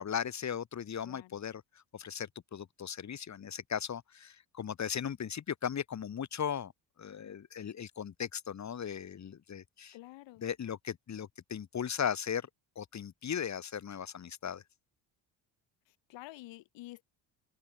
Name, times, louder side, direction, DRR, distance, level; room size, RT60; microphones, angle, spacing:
voice 1, 0.0-1.6 1.9-6.7 7.0-10.0 10.4-12.5 12.8-14.6, left 8 dB, 40° left, 2.3 m, -37 dB
voice 2, 1.0-1.4 9.9-10.5 15.9-17.0, left 17 dB, 75° left, 3.5 m, -49 dB
cardioid pair, 115°, 44 cm